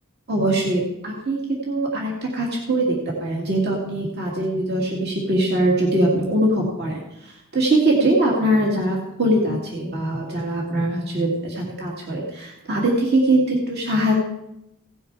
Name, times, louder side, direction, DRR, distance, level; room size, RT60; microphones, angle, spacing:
voice 1, 0.3-1.4 1.7-14.1, right 1 dB, 50° right, -3 dB, 2.4 m, -22 dB
17.0 x 7.0 x 4.8 m, 0.86 s
head